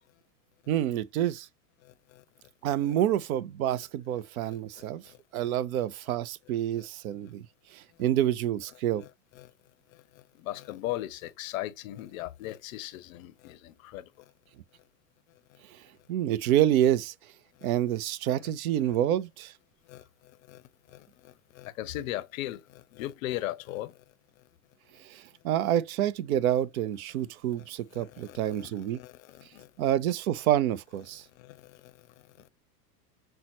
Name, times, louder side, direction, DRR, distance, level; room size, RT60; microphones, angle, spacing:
voice 1, 0.7-1.5 2.6-5.0 5.3-7.5 7.7-9.0 16.1-17.1 17.6-19.5 25.0-29.0 29.8-31.2, right 11 dB, 60° right, 0.5 m, -28 dB
voice 2, 1.8-2.5 4.4-5.5 6.8-6.9 9.0-9.1 9.3-9.5 9.9-14.3 15.5-15.6 17.5-17.7 18.4-18.5 18.8-19.0 19.8-24.0 27.6-29.7 31.3-32.5, left 15 dB, 55° left, 0.6 m, -40 dB
5.4 x 2.1 x 2.8 m
hypercardioid pair, 105°, 49 cm